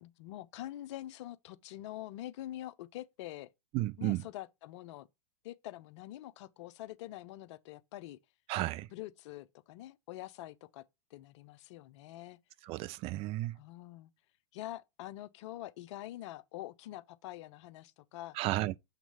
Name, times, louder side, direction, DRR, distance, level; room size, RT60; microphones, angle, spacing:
voice 1, 0.0-3.5 4.0-5.1 5.4-8.2 8.9-10.8 11.1-12.4 13.5-14.1 14.5-18.4, left 15 dB, 60° left, 0.7 m, -45 dB
voice 2, 3.7-4.3 8.5-8.9 12.6-13.6 18.3-18.8, right 17 dB, 35° right, 0.4 m, -33 dB
7.3 x 3.0 x 5.4 m
hypercardioid pair, 110°, 17 cm